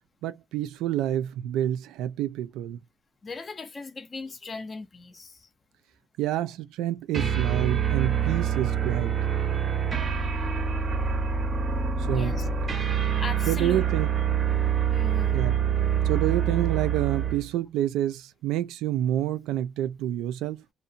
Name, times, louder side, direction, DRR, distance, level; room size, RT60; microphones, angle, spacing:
voice 1, 0.2-2.8 6.2-9.1 12.1-12.4 13.5-14.1 15.3-15.6 16.0-20.6, right 12 dB, 75° right, 0.4 m, -28 dB
voice 2, 3.2-5.5 12.1-12.5 13.2-13.8 14.9-15.4, left 4 dB, 20° left, 0.4 m, -38 dB
sound 1, 7.1-17.5, right 8 dB, 25° right, 0.5 m, -26 dB
2.8 x 2.1 x 2.5 m
cardioid pair, 150°, 0 cm